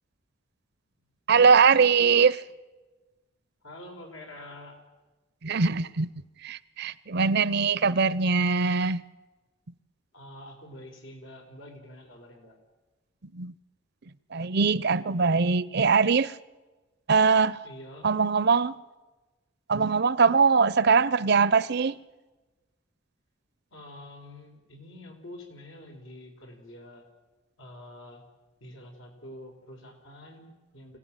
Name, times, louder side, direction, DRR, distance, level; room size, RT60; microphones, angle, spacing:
voice 1, 1.3-2.4 5.4-6.1 6.4-9.0 13.3-13.5 14.3-16.3 17.1-17.6 18.0-18.7 19.7-22.0, right 5 dB, 55° right, 0.6 m, -22 dB
voice 2, 3.6-4.8 10.1-12.6 17.6-18.1 23.7-27.1 27.6-28.2 28.6-31.0, left 1 dB, 85° left, 4.5 m, -46 dB
25.0 x 17.0 x 9.0 m
head